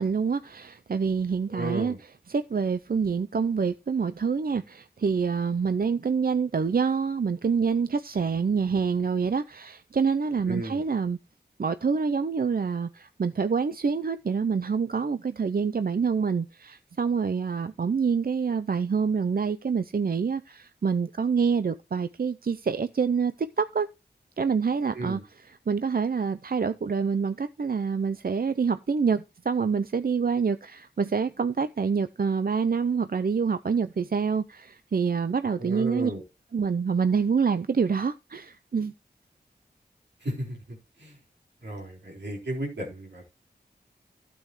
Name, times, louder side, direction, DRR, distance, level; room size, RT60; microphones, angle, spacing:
voice 1, 0.0-1.9 2.3-11.2 11.6-23.9 24.4-36.1 36.5-38.9, right 5 dB, 60° right, 0.6 m, -26 dB
voice 2, 1.5-2.0 10.5-10.8 24.9-25.2 35.6-36.2 40.2-40.6 41.0-41.2 41.6-43.2, right 1 dB, 85° right, 4.2 m, -33 dB
12.0 x 8.6 x 3.1 m
cardioid pair, 45°, 18 cm